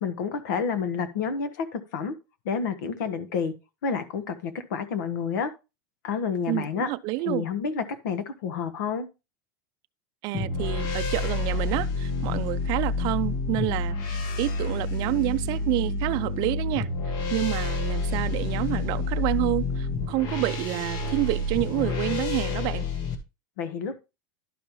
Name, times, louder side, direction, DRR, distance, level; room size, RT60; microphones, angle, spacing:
voice 1, 0.0-2.1 2.4-3.5 3.8-5.5 6.0-6.9 7.2-9.1 23.6-24.0, left 6 dB, 80° left, 1.3 m, -29 dB
voice 2, 6.5-7.5 10.2-16.9 17.3-22.9, right 18 dB, 45° right, 0.4 m, -28 dB
sound 1, 10.3-23.2, left 3 dB, 45° left, 1.4 m, -29 dB
11.5 x 5.3 x 3.0 m
supercardioid pair, 150°, 10 cm